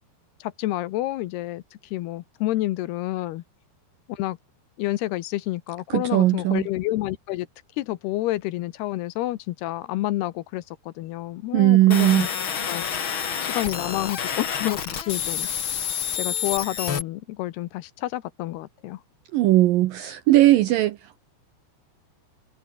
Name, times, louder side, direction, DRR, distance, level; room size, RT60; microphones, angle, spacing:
voice 1, 0.4-3.4 4.1-4.4 4.8-7.5 7.8-12.3 12.7-15.5 16.2-19.0, left 16 dB, 75° left, 2.8 m, -29 dB
voice 2, 5.9-6.7 11.5-12.3 19.3-21.2, right 16 dB, 75° right, 2.1 m, -18 dB
sound 1, 11.9-17.0, left 7 dB, 45° left, 1.7 m, -28 dB
omnidirectional pair, 4.9 m